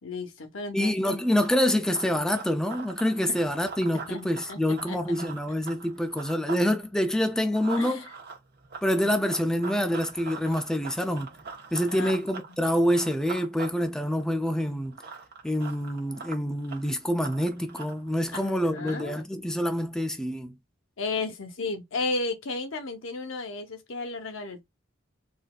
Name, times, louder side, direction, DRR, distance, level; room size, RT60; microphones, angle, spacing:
voice 1, 0.0-1.2 4.1-5.0 7.8-8.1 11.9-12.6 18.3-19.1 21.0-24.6, left 3 dB, 75° left, 0.9 m, -34 dB
voice 2, 0.7-8.1 8.8-11.3 11.7-15.0 15.4-20.5, equal, 5° left, 0.3 m, -26 dB
Run, 1.2-6.7 7.0-19.2, right 5 dB, 55° right, 1.0 m, -43 dB
4.0 x 2.5 x 2.3 m
head